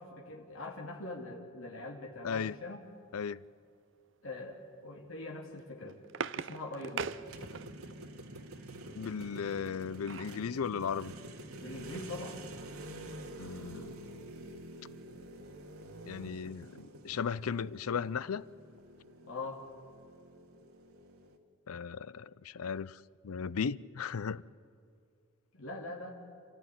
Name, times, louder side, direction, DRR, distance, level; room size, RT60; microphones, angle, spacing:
voice 1, 0.0-2.8 4.2-6.0 6.3-7.1 11.6-12.4 19.2-19.6 25.5-26.2, left 2 dB, 70° left, 2.7 m, -43 dB
voice 2, 2.2-2.6 3.1-3.4 9.0-11.1 13.4-13.9 16.0-18.4 21.7-24.4, left 6 dB, 90° left, 0.5 m, -36 dB
sound 1, 5.5-8.0 9.5-10.4 10.9-11.0 11.3-11.5, right 6 dB, 60° right, 0.6 m, -41 dB
sound 2, 7.0-21.4, right 1 dB, 90° right, 2.1 m, -48 dB
29.0 x 14.0 x 10.0 m
head